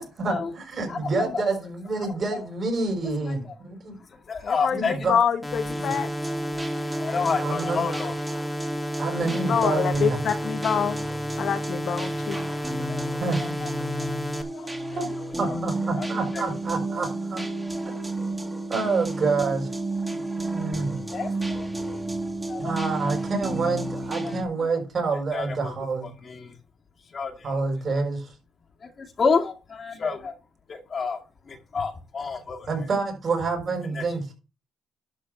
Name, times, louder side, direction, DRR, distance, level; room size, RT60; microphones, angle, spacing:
voice 1, 0.0-4.0 4.7-5.2 5.8-5.9 7.4-7.8 8.3-8.5 9.0-10.2 13.2-13.5 14.9-15.1 15.4-17.5 18.7-19.7 20.4-20.9 22.6-26.1 27.4-28.3 32.7-34.3, right 3 dB, 45° right, 6.4 m, -28 dB
voice 2, 0.9-1.4 3.3-3.4 4.3-4.9 7.0-8.1 12.9-13.0 14.0-14.1 15.5-15.6 16.0-16.1 20.9-21.7 22.5-22.7 24.2-24.3 25.3-25.7 26.2-26.5 27.1-27.3 29.0-30.3 30.7-31.2 31.5-32.7 34.0-34.1, left 5 dB, 45° left, 2.1 m, -28 dB
voice 3, 4.4-6.1 9.2-11.0 11.4-12.5 14.5-14.7, left 7 dB, 65° left, 1.4 m, -26 dB
sound 1, 5.4-14.4, equal, 10° left, 2.2 m, -32 dB
sound 2, 5.7-24.4, right 2 dB, 15° right, 2.6 m, -32 dB
12.0 x 5.0 x 6.7 m
cardioid pair, 90°, 0 cm